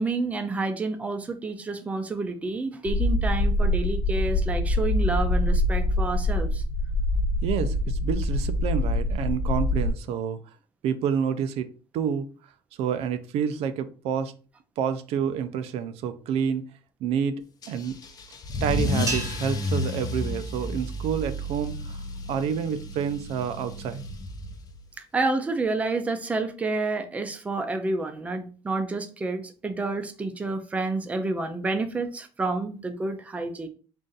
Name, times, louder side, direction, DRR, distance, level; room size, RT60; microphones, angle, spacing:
voice 1, 0.0-6.6 25.0-33.7, right 3 dB, 15° right, 7 dB, 0.4 m, -29 dB
sound 1, 2.9-9.9, left 1 dB, 70° left, 0.8 m, -24 dB
voice 2, 7.4-10.4 10.8-11.7 11.9-12.3 12.8-14.3 14.8-16.7 17.0-18.0 18.6-22.0 22.3-24.0, right 7 dB, 80° right, 11 dB, 0.4 m, -28 dB
Car / Engine starting / Accelerating revving vroom, 17.6-24.8, left 1 dB, 40° left, 0.6 m, -31 dB
sound 2, 19.1-21.5, right 2 dB, 30° right, 0.8 m, -37 dB
3.9 x 2.5 x 3.8 m, 0.37 s
cardioid pair, 170°, 10 cm